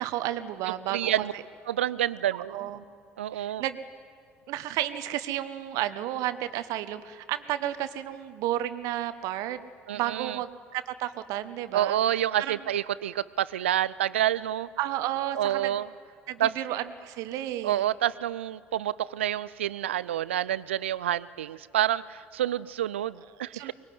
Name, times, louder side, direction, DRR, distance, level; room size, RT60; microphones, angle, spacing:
voice 1, 0.0-1.4 2.3-2.8 3.3-3.8 4.5-9.6 9.9-12.6 14.8-15.8 16.3-17.9 23.5-23.7, right 13 dB, 60° right, 11 dB, 1.2 m, -32 dB
voice 2, 0.9-1.3 1.7-2.7 3.2-3.6 9.9-10.4 11.7-14.7 15.3-15.9 16.4-16.5 17.6-23.7, right 12 dB, 80° right, 19 dB, 0.5 m, -28 dB
23.5 x 21.0 x 9.5 m, 2.4 s
figure-of-eight pair, 60°, 6 cm